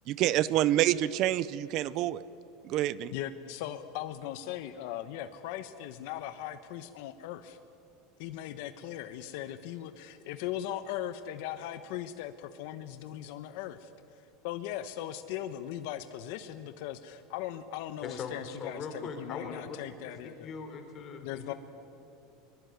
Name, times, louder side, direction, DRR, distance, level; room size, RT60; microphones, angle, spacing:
voice 1, 0.1-2.2 2.6-3.1, right 13 dB, 45° right, 18 dB, 0.6 m, -27 dB
voice 2, 3.1-7.6 8.2-13.9 14.4-20.5 21.2-21.5, left 12 dB, 65° left, 10 dB, 1.0 m, -39 dB
voice 3, 18.0-19.8 20.1-21.6, left 5 dB, 30° left, 6 dB, 3.5 m, -41 dB
23.0 x 22.5 x 9.4 m, 2.8 s
supercardioid pair, 155°, 0 cm